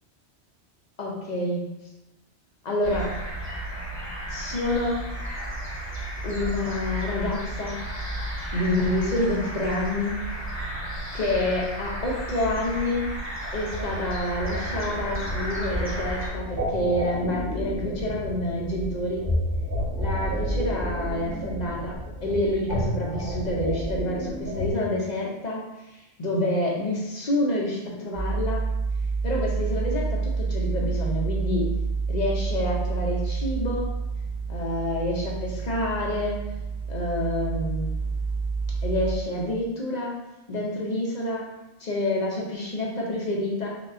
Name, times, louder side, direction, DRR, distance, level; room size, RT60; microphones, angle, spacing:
voice 1, 1.0-1.7 2.6-3.2 4.3-5.0 6.2-7.8 8.5-10.2 11.1-13.1 13.5-19.3 20.0-21.9 22.2-28.7 29.2-31.7 32.1-33.9 34.5-36.4 36.9-38.0 38.8-40.2 40.5-41.5 41.8-43.7, left 1 dB, 50° left, -2 dB, 0.6 m, -28 dB
sound 1, 2.8-16.3, right 1 dB, 15° right, 0.7 m, -33 dB
sound 2, 13.7-24.7, equal, 45° right, 1.4 m, -31 dB
sound 3, 28.1-39.1, right 4 dB, 60° right, 0.9 m, -28 dB
4.9 x 2.2 x 2.5 m, 0.97 s
omnidirectional pair, 1.2 m